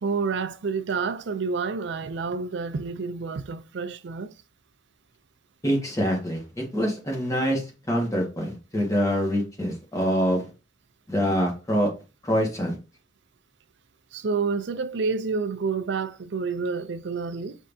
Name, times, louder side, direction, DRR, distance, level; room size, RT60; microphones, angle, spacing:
voice 1, 0.0-4.3 14.1-17.6, right 4 dB, 70° right, 0.5 m, -29 dB
voice 2, 5.6-7.6 7.9-10.5 11.1-11.9 12.2-12.7, equal, 20° left, 1.5 m, -25 dB
5.4 x 3.5 x 2.7 m
head